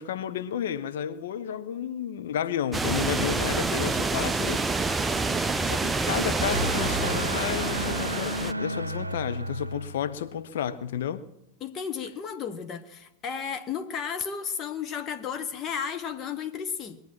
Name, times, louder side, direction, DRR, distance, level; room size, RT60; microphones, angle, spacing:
voice 1, 0.0-4.6 5.6-11.3, left 9 dB, 60° left, 0.9 m, -32 dB
sound 1, 2.7-8.5, right 3 dB, 10° right, 0.5 m, -27 dB
sound 2, 5.9-10.4, right 1 dB, 85° right, 0.5 m, -33 dB
voice 2, 11.6-17.0, left 7 dB, 30° left, 0.9 m, -33 dB
21.0 x 9.0 x 7.5 m
figure-of-eight pair, 90°, 0 cm